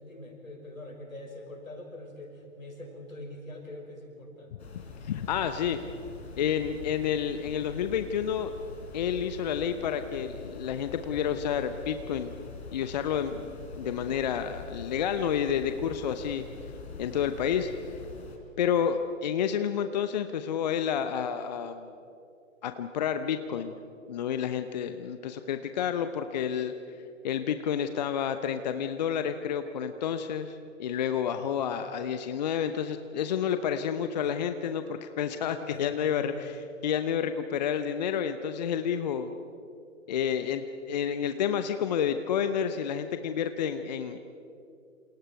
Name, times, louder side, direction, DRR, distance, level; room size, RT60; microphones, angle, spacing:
voice 1, 0.0-4.7 31.3-31.7 34.1-34.5 35.7-36.5, left 1 dB, 75° left, 1 dB, 6.3 m, -44 dB
sound 1, 4.6-18.4, left 4 dB, 50° left, 4.6 m, -44 dB
voice 2, 5.0-5.8 6.4-8.5 8.9-12.3 12.7-13.5 13.8-16.4 17.0-17.7 18.6-21.9 22.6-23.7 24.1-26.7 27.2-39.3 40.1-44.2, left 8 dB, 30° left, 9 dB, 0.8 m, -30 dB
28.0 x 28.0 x 4.7 m, 2.6 s
figure-of-eight pair, 125°, 40 cm